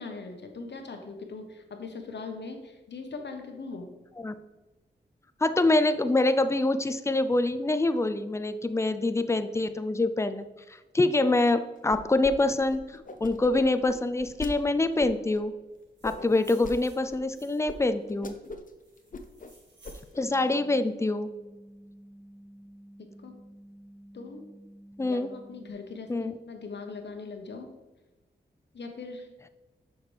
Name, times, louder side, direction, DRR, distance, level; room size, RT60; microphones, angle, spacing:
voice 1, 0.0-3.9 23.2-23.3 24.1-24.4 25.0-27.7 28.7-29.3, left 4 dB, 70° left, 5 dB, 1.1 m, -40 dB
voice 2, 5.4-10.5 10.9-12.8 13.2-15.5 16.0-18.4 20.2-21.3 25.0-25.3 26.1-26.3, left 2 dB, 15° left, 11 dB, 0.5 m, -25 dB
sound 1, 11.9-12.3 12.6-14.5 15.0-15.4 16.0-16.8 17.1-17.2 17.7-17.8 18.1-18.7 19.0-19.5 19.8-20.2, left 3 dB, 45° left, 0.7 m, -40 dB
sound 2, 15.7-17.8 18.4-20.1, right 3 dB, 75° right, 2.3 m, -56 dB
sound 3, 20.2-25.7, right 1 dB, 40° right, 0.7 m, -51 dB
6.9 x 6.0 x 3.4 m, 1.1 s
cardioid pair, 60°, 19 cm